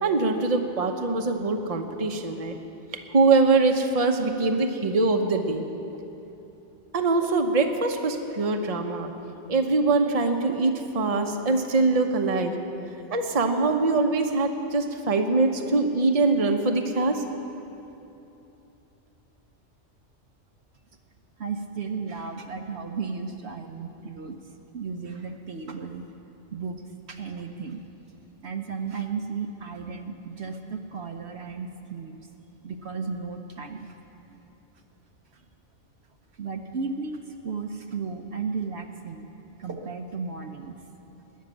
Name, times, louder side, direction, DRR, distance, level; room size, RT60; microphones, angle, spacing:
voice 1, 0.0-2.5 3.1-5.6 6.9-9.1 9.5-12.5 13.1-17.2, right 3 dB, 35° right, 5 dB, 0.9 m, -23 dB
voice 2, 21.4-24.3 24.7-26.0 26.5-27.8 28.4-32.3 32.6-33.9 35.3-35.4 36.4-39.3 39.6-40.7, right 5 dB, 65° right, 5 dB, 1.0 m, -34 dB
20.0 x 6.6 x 9.9 m, 3.0 s
omnidirectional pair, 1.2 m